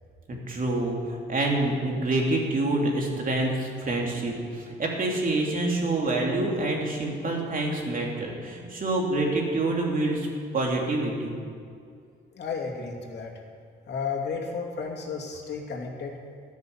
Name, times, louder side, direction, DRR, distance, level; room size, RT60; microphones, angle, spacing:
voice 1, 0.3-10.3 10.5-11.3, right 2 dB, 45° right, -1 dB, 3.2 m, -27 dB
voice 2, 12.3-13.3 13.9-16.1, left 5 dB, 60° left, 0 dB, 2.7 m, -33 dB
13.0 x 9.7 x 7.2 m, 2.3 s
cardioid pair, 90°, 20 cm